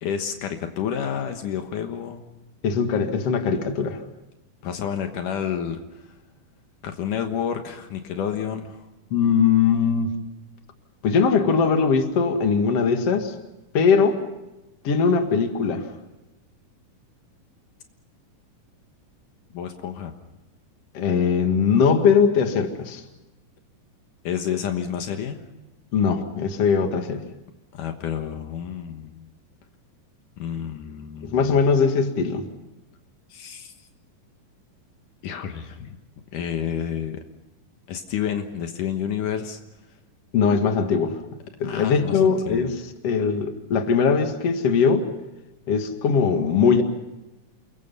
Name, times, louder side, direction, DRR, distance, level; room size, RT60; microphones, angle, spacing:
voice 1, 0.0-2.3 4.6-6.0 6.8-8.8 19.5-20.1 24.2-25.4 27.7-29.3 30.4-31.7 33.3-33.7 35.2-36.0 36.3-37.2 37.9-39.6 41.6-42.7, left 8 dB, 75° left, 5 dB, 2.9 m, -30 dB
voice 2, 2.6-4.0 9.1-10.1 11.0-13.3 13.7-14.2 14.8-15.9 20.9-23.0 25.9-27.2 31.2-32.5 40.3-41.2 41.6-45.1 45.7-46.8, left 6 dB, 50° left, 6 dB, 2.7 m, -20 dB
29.0 x 22.5 x 5.5 m, 1.0 s
omnidirectional pair, 3.8 m